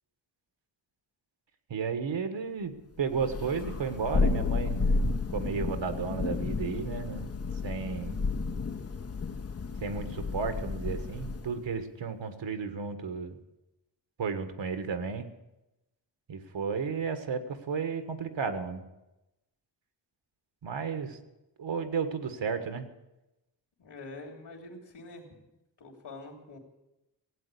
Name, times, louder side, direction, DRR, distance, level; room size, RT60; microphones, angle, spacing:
voice 1, 1.7-4.8 5.3-7.3 7.6-8.2 9.8-13.4 14.2-15.3 16.3-18.8 20.6-21.2 21.6-22.9, right 5 dB, 75° right, 8 dB, 1.5 m, -33 dB
Thunder, 3.1-11.6, left 4 dB, 35° left, 0.7 m, -31 dB
voice 2, 23.8-25.3 25.8-26.6, left 2 dB, 65° left, 0 dB, 3.2 m, -45 dB
17.5 x 8.8 x 8.4 m, 0.95 s
wide cardioid pair, 145°, 44 cm